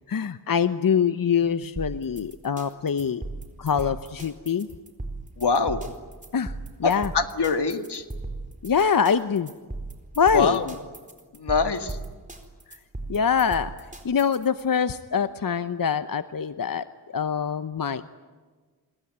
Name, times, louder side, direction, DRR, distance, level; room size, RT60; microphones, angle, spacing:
voice 1, 0.1-3.2 3.6-4.7 6.3-6.5 6.8-7.1 8.6-9.5 10.2-10.6 13.1-13.7 14.0-16.8 17.1-18.1, left 7 dB, 55° left, 11 dB, 0.9 m, -24 dB
sound 1, 1.8-14.6, right 2 dB, 20° right, 4.3 m, -37 dB
voice 2, 5.4-5.8 6.8-8.0 10.3-10.7 11.3-12.0, left 4 dB, 80° left, 7 dB, 1.9 m, -24 dB
27.0 x 22.0 x 9.5 m, 1.4 s
wide cardioid pair, 60°, 40 cm